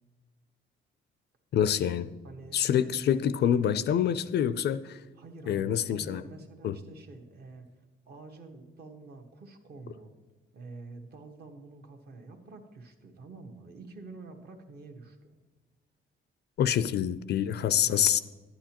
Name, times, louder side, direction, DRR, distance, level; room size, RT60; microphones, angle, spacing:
voice 1, 1.5-2.1 2.5-5.0 5.5-6.2 6.6-6.8 16.6-18.2, left 9 dB, 55° left, 14 dB, 0.4 m, -26 dB
voice 2, 2.2-2.6 5.2-7.7 8.1-10.1 10.5-15.3 17.4-18.2, right 3 dB, 50° right, 4 dB, 1.2 m, -47 dB
11.5 x 10.0 x 2.9 m, 1.3 s
cardioid pair, 145°, 21 cm